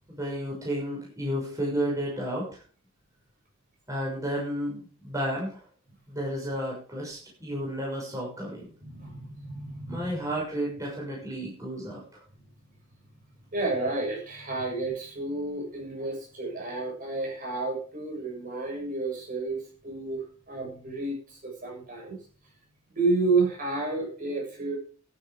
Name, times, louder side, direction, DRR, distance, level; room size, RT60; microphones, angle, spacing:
voice 1, 0.2-2.5 3.9-5.6 6.1-8.6 9.9-12.0, equal, 15° right, -4 dB, 6.4 m, -32 dB
voice 2, 8.8-10.2 13.5-22.2 23.0-24.8, right 3 dB, 40° right, -1 dB, 7.2 m, -31 dB
12.0 x 11.0 x 5.2 m, 0.41 s
head